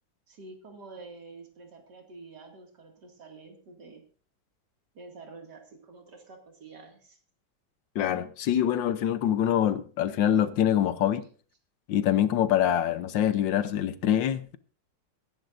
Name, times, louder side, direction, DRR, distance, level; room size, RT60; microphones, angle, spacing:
voice 1, 0.3-4.0 4.9-7.2, right 3 dB, 60° right, 2.8 m, -48 dB
voice 2, 7.9-11.2 11.9-14.6, left 10 dB, 75° left, 1.5 m, -25 dB
22.5 x 11.0 x 2.6 m
omnidirectional pair, 2.1 m